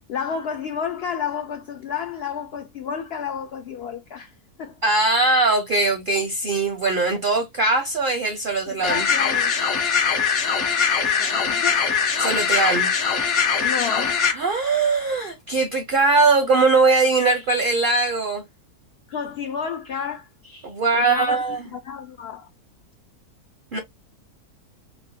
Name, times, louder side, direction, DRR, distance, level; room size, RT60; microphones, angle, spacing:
voice 1, 0.1-4.8 8.7-9.6 11.2-11.9 13.6-14.3 19.1-20.3 20.9-22.5, left 7 dB, 85° left, 0.5 m, -31 dB
voice 2, 4.8-9.1 12.2-12.9 14.3-18.4 20.6-21.7 23.7-23.8, right 3 dB, 55° right, 0.6 m, -20 dB
Beaten Alien, 8.8-14.3, left 6 dB, 55° left, 1.1 m, -21 dB
4.2 x 2.1 x 2.6 m
omnidirectional pair, 1.6 m